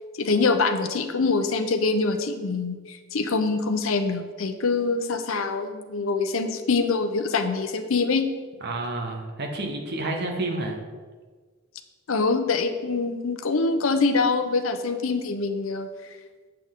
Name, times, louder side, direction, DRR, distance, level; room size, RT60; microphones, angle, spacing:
voice 1, 0.2-8.3 12.1-15.9, left 4 dB, 70° left, 8 dB, 0.7 m, -24 dB
voice 2, 8.6-10.8, right 2 dB, 55° right, 2 dB, 1.1 m, -30 dB
7.7 x 7.5 x 3.7 m, 1.5 s
head